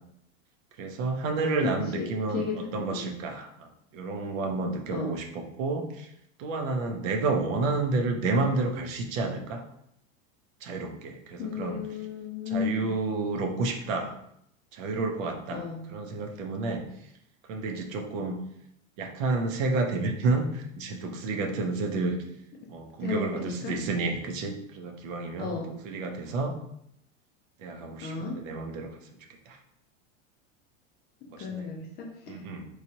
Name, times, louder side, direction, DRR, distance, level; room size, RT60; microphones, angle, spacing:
voice 1, 0.8-6.1 6.4-9.6 10.6-11.8 12.5-14.1 14.7-16.9 17.5-18.4 19.0-22.2 22.7-25.6 25.8-26.5 27.6-28.9 29.5-29.6 31.3-31.7 32.3-32.7, right 3 dB, 75° right, 3 dB, 0.7 m, -30 dB
voice 2, 1.6-2.1 2.3-3.1 4.9-5.1 11.4-12.9 15.5-15.8 23.0-23.7 25.4-25.7 28.0-28.4 31.4-32.3, left 5 dB, 25° left, 0 dB, 0.4 m, -34 dB
3.1 x 2.4 x 2.7 m, 0.74 s
supercardioid pair, 120°, 39 cm